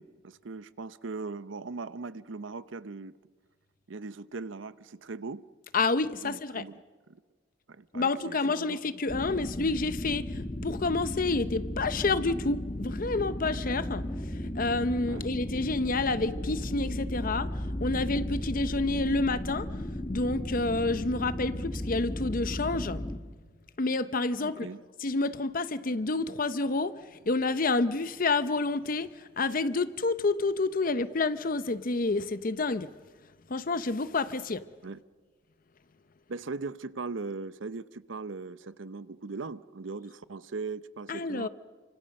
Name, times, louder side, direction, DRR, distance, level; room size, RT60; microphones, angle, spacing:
voice 1, 0.0-3.1 3.9-5.4 6.2-6.8 7.1-7.2 7.7-8.8 15.1-15.3 24.4-24.8 34.8-35.0 36.3-41.5, right 4 dB, 75° right, 0.7 m, -39 dB
voice 2, 5.7-6.6 7.9-19.7 20.1-23.0 23.8-24.7 25.0-32.9 33.5-34.6 41.1-41.5, left 3 dB, 45° left, 0.7 m, -29 dB
sound 1, 9.1-23.2, left 1 dB, 25° left, 1.6 m, -35 dB
28.5 x 25.5 x 6.5 m
head